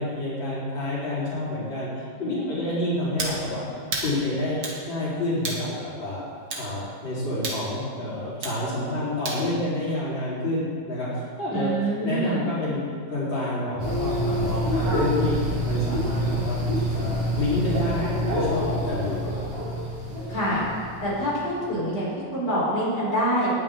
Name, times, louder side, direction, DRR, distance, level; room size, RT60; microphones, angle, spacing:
voice 1, 0.0-3.6 4.0-4.6 4.9-6.2 6.6-12.8 13.1-15.4 15.6-16.6 16.9-19.5, left 1 dB, 80° left, -9 dB, 4.7 m, -28 dB
sound 1, 3.2-3.4 3.9-4.1 4.6-4.8 5.4-5.7 6.5-6.7 7.4-7.6 8.4-8.6 9.3-9.4, right 2 dB, 85° right, 2.6 m, -30 dB
voice 2, 11.5-12.4 20.3-20.6 21.0-23.5, right 1 dB, 35° left, -7 dB, 4.4 m, -26 dB
sound 2, 13.8-21.4, equal, 65° right, 4.6 m, -27 dB
19.5 x 9.4 x 3.7 m, 2.2 s
omnidirectional pair, 2.0 m